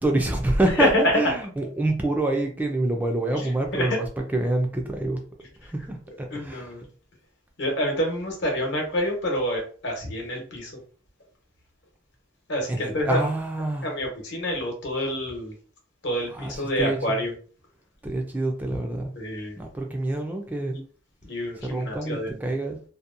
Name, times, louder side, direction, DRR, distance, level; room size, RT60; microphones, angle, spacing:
voice 1, 0.0-4.1 4.3-5.2 5.6-6.9 12.7-13.9 16.3-17.2 18.0-19.1 19.6-20.8 21.6-22.8, right 2 dB, 10° right, 2 dB, 0.3 m, -26 dB
voice 2, 6.3-6.8 7.6-10.7 12.5-13.3 13.8-15.5 16.0-17.3 19.1-19.6 21.2-22.4, equal, 60° left, 1 dB, 0.9 m, -27 dB
2.7 x 2.1 x 2.4 m, 0.41 s
head